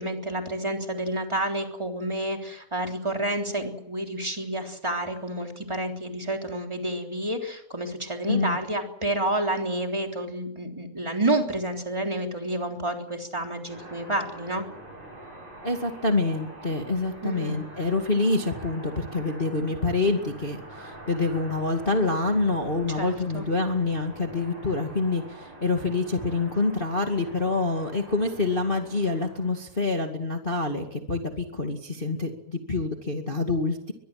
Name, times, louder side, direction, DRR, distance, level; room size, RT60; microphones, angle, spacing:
voice 1, 0.0-14.6 17.2-17.5 23.0-23.5, right 1 dB, 10° right, 3 dB, 3.3 m, -29 dB
voice 2, 8.3-8.6 15.6-33.9, left 3 dB, 20° left, 4 dB, 1.9 m, -26 dB
sound 1, 13.7-29.7, right 1 dB, 65° right, 9.3 m, -44 dB
23.5 x 21.0 x 7.6 m, 0.75 s
omnidirectional pair, 3.5 m